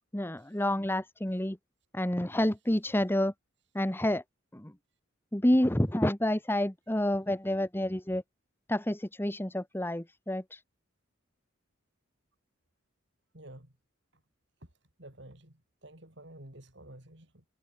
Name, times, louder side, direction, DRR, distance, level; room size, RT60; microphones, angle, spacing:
voice 1, 0.1-1.6 1.9-3.3 3.7-4.2 4.5-4.7 5.3-8.2 8.7-10.6, left 1 dB, 10° left, 1.1 m, -29 dB
voice 2, 13.3-13.7 14.1-14.2 14.6-14.7 15.0-17.4, right 1 dB, 60° right, 4.3 m, -51 dB
head